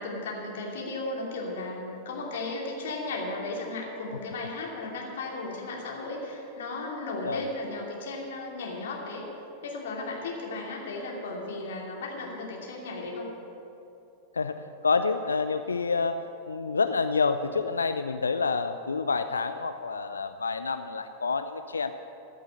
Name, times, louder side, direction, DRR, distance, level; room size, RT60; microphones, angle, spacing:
voice 1, 0.0-9.3 9.6-13.3, left 2 dB, 60° left, -1 dB, 2.7 m, -35 dB
voice 2, 14.3-21.9, left 4 dB, 75° left, 9 dB, 0.4 m, -28 dB
15.0 x 6.3 x 9.5 m, 2.9 s
figure-of-eight pair, 90°, 0 cm